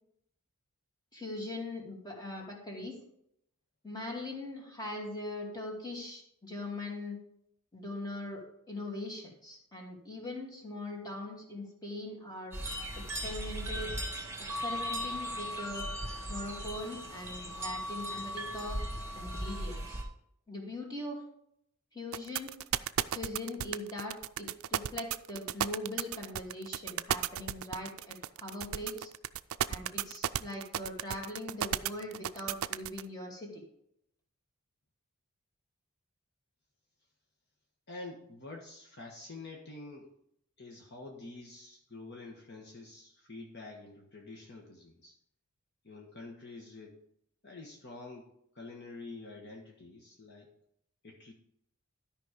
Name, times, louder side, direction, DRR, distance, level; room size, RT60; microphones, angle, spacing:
voice 1, 1.1-3.0 3.8-7.2 7.7-12.6 13.0-13.9 14.4-15.9 16.3-18.8 19.1-20.1 20.5-21.2 21.9-22.5 23.1-29.1 29.7-33.6, left 1 dB, 20° left, -1 dB, 2.3 m, -41 dB
sound 1, 12.5-20.0, equal, 10° right, 2.0 m, -37 dB
sound 2, 22.1-33.0, right 11 dB, 65° right, 0.4 m, -33 dB
voice 2, 37.9-40.1 40.6-45.2 45.8-47.0 47.4-50.5 51.0-51.3, left 2 dB, 50° left, 0 dB, 1.4 m, -47 dB
12.5 x 5.4 x 5.1 m, 0.74 s
head